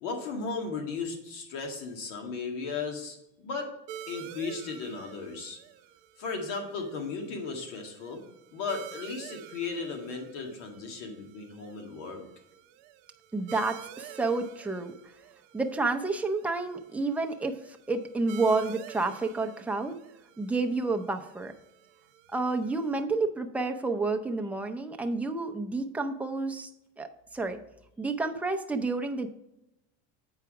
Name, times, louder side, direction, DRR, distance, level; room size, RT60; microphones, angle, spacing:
voice 1, 0.0-3.7 4.1-5.6 6.2-8.2 8.5-12.2, left 4 dB, 80° left, 3 dB, 2.0 m, -36 dB
sound 1, 3.9-23.0, right 11 dB, 75° right, 0.7 m, -49 dB
voice 2, 13.3-14.9 15.5-19.9 20.4-21.5 22.3-26.7 27.0-27.6 28.0-29.3, right 3 dB, 5° right, 4 dB, 0.5 m, -30 dB
8.1 x 4.8 x 4.7 m, 0.87 s
supercardioid pair, 125°, 36 cm